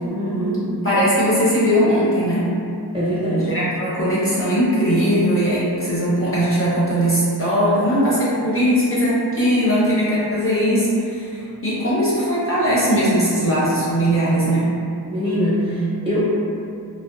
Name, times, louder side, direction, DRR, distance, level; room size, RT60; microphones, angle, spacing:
voice 1, 0.1-0.7 2.9-3.5 15.1-16.3, equal, 15° right, -9 dB, 0.8 m, -22 dB
voice 2, 0.8-2.5 3.5-14.7, equal, 30° left, -10 dB, 0.6 m, -19 dB
2.6 x 2.1 x 2.4 m, 2.5 s
wide cardioid pair, 75°, 42 cm